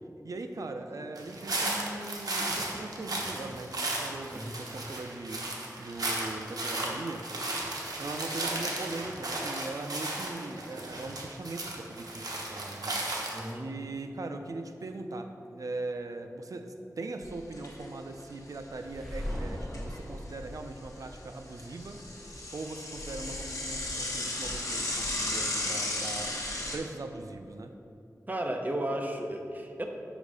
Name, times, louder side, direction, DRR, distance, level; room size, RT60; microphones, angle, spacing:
voice 1, 0.2-7.3 8.0-22.0 22.5-26.3 26.7-27.7, right 2 dB, 65° right, 6 dB, 0.5 m, -40 dB
sound 1, 1.2-13.5, right 2 dB, 85° right, 0.9 m, -35 dB
voice 2, 13.3-13.7 28.3-29.8, right 1 dB, 30° right, 3 dB, 0.7 m, -33 dB
Bicycle / Mechanisms, 17.2-17.9 18.2-18.3 18.5-18.6 19.3-20.5 20.8-26.8, left 2 dB, 55° left, 1.0 m, -35 dB
sound 2, 18.8-21.7, equal, 5° left, 1.1 m, -39 dB
5.3 x 5.1 x 5.1 m, 2.7 s
wide cardioid pair, 90°, 6 cm